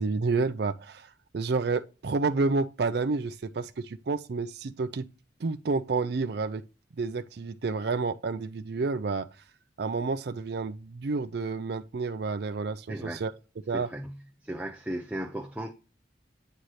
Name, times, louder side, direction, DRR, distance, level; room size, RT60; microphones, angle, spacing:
voice 1, 0.0-5.1 5.4-6.6 7.0-9.3 9.8-13.3 13.7-13.9, right 4 dB, 55° right, 0.4 m, -30 dB
voice 2, 12.9-13.2 13.7-14.2 14.4-15.7, right 1 dB, 5° right, 0.5 m, -36 dB
9.0 x 3.2 x 4.1 m
head